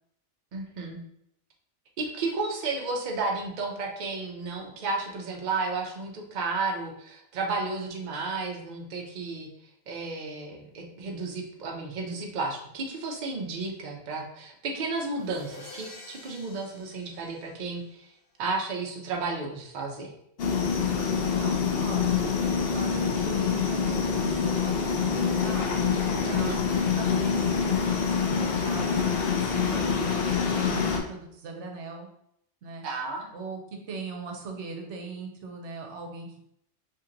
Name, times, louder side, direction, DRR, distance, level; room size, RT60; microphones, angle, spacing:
voice 1, 0.5-1.0 2.0-9.5 9.9-18.1 18.4-20.1 26.2-26.6 32.8-33.3, right 3 dB, 50° right, 1 dB, 0.7 m, -33 dB
sound 1, 15.1-18.1, left 3 dB, 85° left, 1.1 m, -48 dB
sound 2, 20.4-31.0, left 6 dB, 60° left, 0.8 m, -26 dB
voice 2, 21.3-22.4 22.7-25.9 26.2-26.6 27.0-29.1 29.5-32.1 32.6-32.8 33.3-33.6 33.9-36.3, right 4 dB, 80° right, 2 dB, 1.0 m, -40 dB
2.8 x 2.8 x 3.8 m, 0.73 s
omnidirectional pair, 1.2 m